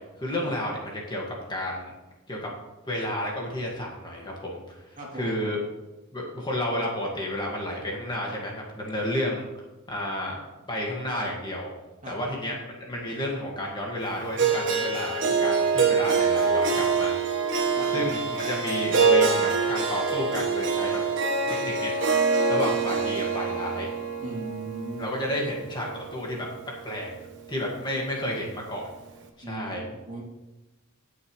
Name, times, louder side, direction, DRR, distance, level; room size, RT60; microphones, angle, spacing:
voice 1, 0.2-1.2 1.5-1.9 2.3-2.5 2.9-5.6 6.1-10.4 10.7-11.7 12.1-17.2 17.9-21.0 21.4-21.9 22.5-23.9 25.0-26.5 26.8-27.1 27.5-28.9 29.4-29.8, left 1 dB, 20° left, -3 dB, 1.9 m, -31 dB
voice 2, 5.0-5.4 12.0-12.2 17.7-18.2 24.2-25.0 29.4-30.2, right 1 dB, 35° right, -4 dB, 3.0 m, -37 dB
Harp, 14.4-26.5, right 4 dB, 60° right, 1.3 m, -25 dB
17.5 x 6.7 x 3.2 m, 1.1 s
head